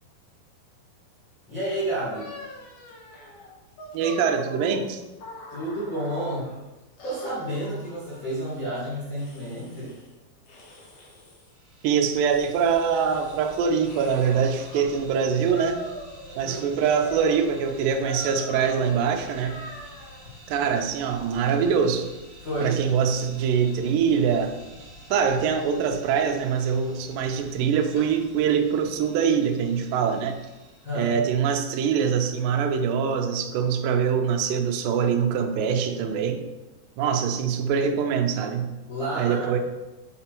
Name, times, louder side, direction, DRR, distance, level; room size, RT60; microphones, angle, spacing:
voice 1, 1.5-2.3 5.5-6.5 7.0-10.0 16.4-16.7 20.6-20.7 22.4-22.8 30.8-31.2 38.9-39.6, right 1 dB, 85° left, -9 dB, 0.7 m, -30 dB
sound 1, 2.1-6.6 7.0-8.5 9.1-10.1 10.5-11.5 12.0-14.9 15.5-16.5 16.8-20.3, left 1 dB, 65° left, 2.7 m, -43 dB
voice 2, 3.9-5.0 11.8-15.8 16.4-19.6 20.5-22.1 22.6-24.6 25.1-30.4 31.0-36.4 37.0-38.7 39.2-39.6, right 7 dB, 75° right, 4 dB, 2.2 m, -24 dB
sound 2, 11.4-31.1, equal, 35° right, 2.3 m, -49 dB
6.9 x 4.4 x 4.4 m, 1.1 s
omnidirectional pair, 4.4 m